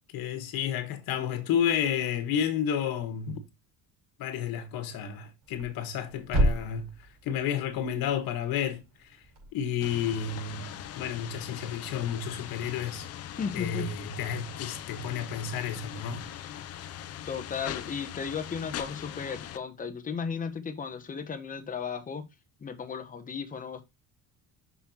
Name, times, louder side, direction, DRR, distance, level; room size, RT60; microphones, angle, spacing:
voice 1, 0.1-3.4 4.2-6.9 7.2-8.8 9.5-13.1 13.5-16.3, left 8 dB, 70° left, 1.5 m, -31 dB
Thump thud, 5.4-9.5, right 1 dB, 60° right, 4.5 m, -32 dB
sound 1, 9.8-19.6, left 11 dB, 45° left, 0.5 m, -41 dB
voice 2, 13.4-13.9 17.2-22.3 22.6-23.8, left 6 dB, 20° left, 0.9 m, -35 dB
6.1 x 5.5 x 2.8 m
cardioid pair, 150°, 37 cm